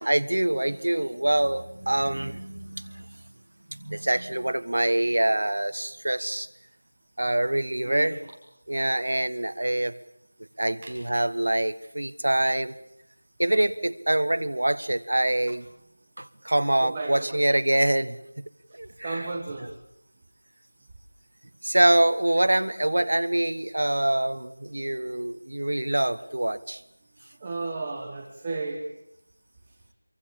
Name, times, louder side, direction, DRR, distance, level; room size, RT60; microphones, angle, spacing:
voice 1, 0.0-3.0 3.7-6.5 7.2-8.2 8.7-10.0 10.6-12.7 13.4-15.6 16.2-18.2 18.7-19.2 19.6-19.7 21.6-26.8, right 1 dB, 65° right, 10 dB, 1.3 m, -25 dB
voice 2, 7.8-8.2 9.4-9.5 10.8-10.9 16.8-17.4 19.0-19.7 27.4-28.8, right 3 dB, 15° right, -1 dB, 1.5 m, -33 dB
25.5 x 23.5 x 7.3 m, 0.79 s
figure-of-eight pair, 180°, 0 cm